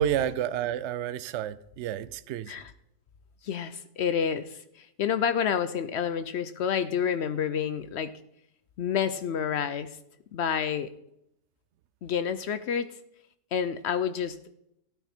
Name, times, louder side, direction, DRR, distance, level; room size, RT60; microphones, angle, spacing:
voice 1, 0.0-2.6, right 10 dB, 75° right, 0.6 m, -30 dB
voice 2, 3.4-8.1 8.8-10.0 10.3-10.9 12.0-13.0 13.5-14.4, left 8 dB, 85° left, 0.5 m, -29 dB
15.0 x 9.0 x 4.4 m
omnidirectional pair, 1.8 m